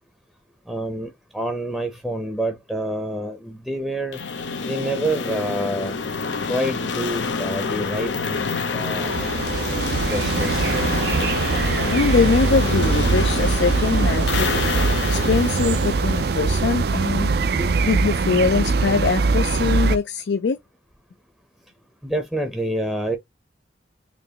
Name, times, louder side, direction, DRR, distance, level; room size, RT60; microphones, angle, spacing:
voice 1, 0.7-4.2 4.6-6.0 6.5-9.3 10.0-10.7 17.5-17.7 22.0-23.2, right 1 dB, ahead, 0.6 m, -27 dB
sound 1, 4.1-17.0, left 4 dB, 90° left, 0.8 m, -27 dB
sound 2, 9.0-20.0, right 4 dB, 60° right, 0.4 m, -22 dB
voice 2, 11.5-17.3 17.8-20.6, left 5 dB, 75° left, 0.4 m, -23 dB
4.2 x 3.0 x 2.9 m
head